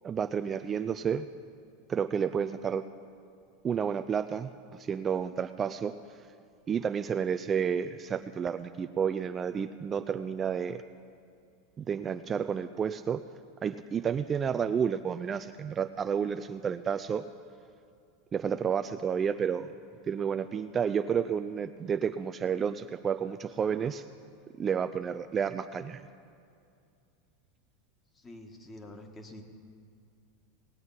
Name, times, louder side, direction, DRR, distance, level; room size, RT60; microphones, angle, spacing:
voice 1, 0.0-1.3 1.9-2.8 3.6-4.5 4.9-5.9 6.7-10.8 11.8-13.2 13.6-17.2 18.3-19.7 20.1-24.0 24.6-26.1, right 7 dB, 25° right, 9 dB, 0.4 m, -30 dB
voice 2, 28.1-29.4, left 1 dB, 20° left, 5 dB, 1.5 m, -47 dB
19.0 x 7.9 x 5.7 m, 2.4 s
supercardioid pair, 115°, 0 cm